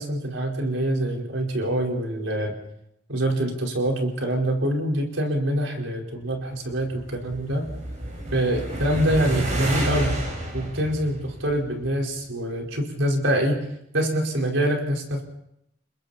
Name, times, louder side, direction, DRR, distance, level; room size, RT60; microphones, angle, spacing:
voice 1, 0.0-2.5 3.1-7.7 8.3-10.2 10.5-13.6 13.9-15.2, right 1 dB, 80° right, 1 dB, 4.8 m, -25 dB
sound 1, 6.5-12.0, right 1 dB, 40° right, 5.6 m, -30 dB
30.0 x 21.5 x 4.4 m, 0.78 s
head